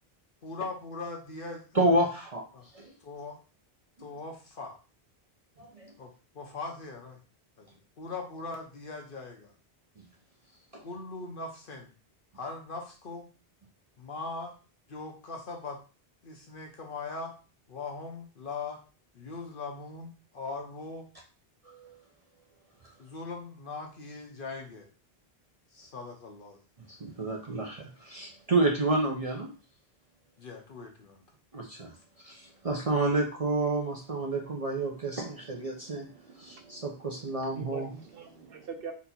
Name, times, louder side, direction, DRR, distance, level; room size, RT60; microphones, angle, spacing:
voice 1, 0.4-2.0 2.5-2.7 3.0-3.4 4.0-4.8 6.0-7.2 7.6-9.5 10.8-11.9 12.3-13.3 14.0-14.5 14.9-15.8 16.2-17.3 17.7-18.8 19.1-21.1 23.0-24.9 25.7-26.6 30.4-31.2, left 3 dB, 60° left, 1 dB, 1.0 m, -40 dB
voice 2, 1.7-2.4 2.7-2.9 5.6-5.9 21.6-22.0 26.9-29.5 31.5-31.9 32.2-36.1 36.4-37.9, right 2 dB, 40° right, -1 dB, 0.8 m, -29 dB
voice 3, 34.4-35.2 35.5-38.9, right 6 dB, 65° right, 5 dB, 0.9 m, -45 dB
4.2 x 2.7 x 4.2 m, 0.35 s
omnidirectional pair, 1.0 m